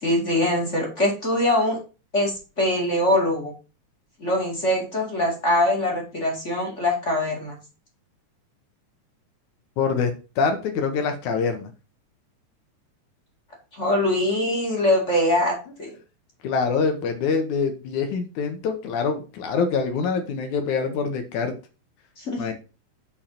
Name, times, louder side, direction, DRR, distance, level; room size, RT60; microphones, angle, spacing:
voice 1, 0.0-1.8 2.1-3.5 4.2-7.6 13.7-15.9 22.2-22.4, left 1 dB, 25° left, -1 dB, 2.6 m, -23 dB
voice 2, 9.8-11.7 16.4-21.5 22.4-22.5, left 5 dB, 75° left, 6 dB, 2.7 m, -25 dB
7.2 x 4.8 x 5.8 m, 0.32 s
omnidirectional pair, 3.5 m